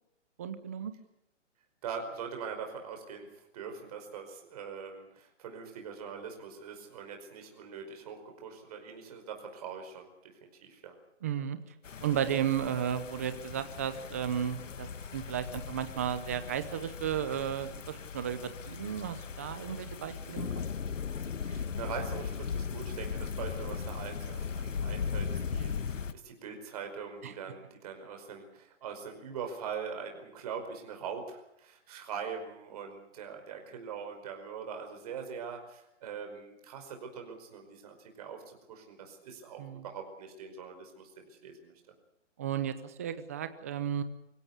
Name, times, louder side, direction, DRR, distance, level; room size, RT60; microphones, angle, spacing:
voice 1, 0.4-0.9 11.2-11.6 12.0-20.5 27.2-27.3 39.6-39.8 42.4-44.0, right 9 dB, 10° right, 11 dB, 0.7 m, -34 dB
voice 2, 1.8-10.9 21.4-41.7, right 6 dB, 30° right, 4 dB, 5.1 m, -42 dB
sound 1, 11.8-26.1, left 6 dB, 85° left, 1.6 m, -38 dB
24.5 x 16.5 x 8.2 m, 0.84 s
hypercardioid pair, 170°, 37 cm